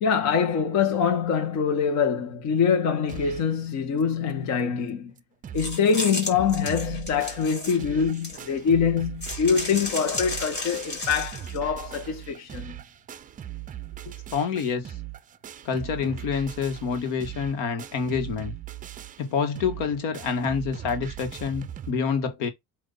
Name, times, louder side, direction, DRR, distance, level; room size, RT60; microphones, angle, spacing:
voice 1, 0.0-5.1 5.5-12.8, left 6 dB, 50° left, 1.4 m, -24 dB
sound 1, 3.1-3.6 4.0-4.1 4.3-4.4 4.9-5.0 5.2-5.8 6.1-21.9, right 12 dB, 25° right, 0.5 m, -39 dB
sound 2, 5.6-8.6 9.2-11.6, left 2 dB, 30° left, 3.7 m, -33 dB
voice 2, 14.3-14.9 15.7-18.5 19.2-22.5, left 6 dB, 70° left, 1.7 m, -27 dB
7.9 x 2.9 x 5.5 m
cardioid pair, 150°, 34 cm